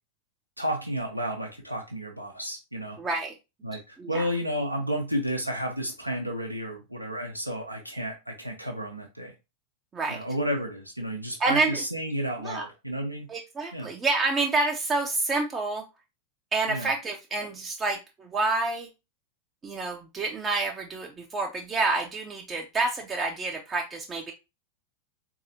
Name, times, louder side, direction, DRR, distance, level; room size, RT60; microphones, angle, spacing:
voice 1, 0.6-3.0 3.6-9.3 10.1-13.3 13.7-13.9 16.7-16.9, equal, 90° right, 1 dB, 0.5 m, -32 dB
voice 2, 3.0-3.3 4.0-4.3 9.9-10.2 11.4-11.8 12.4-12.7 13.3-15.8 16.5-18.9 19.6-24.3, right 3 dB, 20° right, 1 dB, 0.5 m, -28 dB
3.9 x 2.7 x 2.6 m, 0.26 s
figure-of-eight pair, 90°, 0 cm